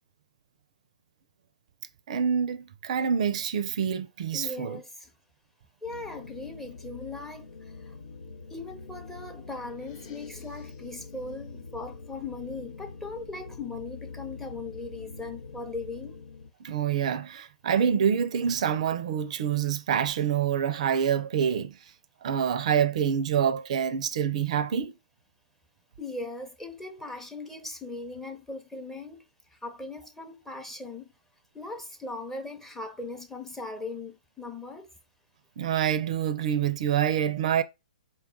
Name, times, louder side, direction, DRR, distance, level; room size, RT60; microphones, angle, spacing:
voice 1, 2.1-4.8 16.6-21.9 22.2-24.9 35.6-37.6, right 8 dB, 55° right, 0.4 m, -26 dB
voice 2, 4.3-5.1 5.8-8.0 8.5-16.2 26.0-29.2 29.5-31.1 31.5-34.9, left 3 dB, 5° left, 0.6 m, -39 dB
sound 1, 5.8-16.5, left 4 dB, 80° left, 0.8 m, -44 dB
sound 2, 9.7-11.3, left 6 dB, 45° left, 1.0 m, -52 dB
4.3 x 2.3 x 3.6 m
hypercardioid pair, 125°, 4 cm